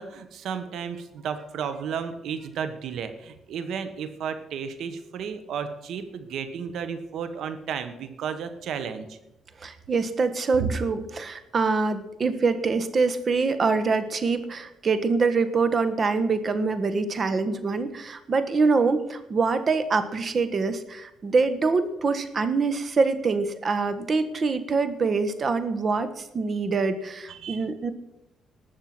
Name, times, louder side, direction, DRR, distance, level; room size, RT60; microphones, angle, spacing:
voice 1, 0.0-9.2 10.6-10.7 27.3-27.7, right 7 dB, 75° right, 10 dB, 1.5 m, -33 dB
voice 2, 9.6-27.9, right 4 dB, 40° right, 11 dB, 1.4 m, -25 dB
19.5 x 6.8 x 6.1 m, 0.91 s
cardioid pair, 90°, 0 cm